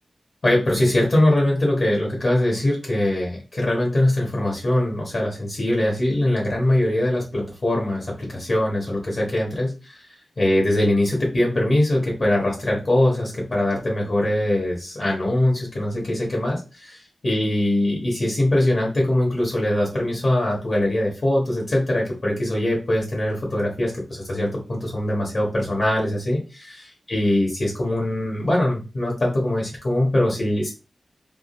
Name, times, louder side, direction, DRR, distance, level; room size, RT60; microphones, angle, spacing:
voice 1, 0.4-10.1 10.4-30.7, left 1 dB, 50° left, -2 dB, 1.2 m, -22 dB
3.6 x 2.4 x 2.5 m, 0.30 s
wide cardioid pair, 105°, 0 cm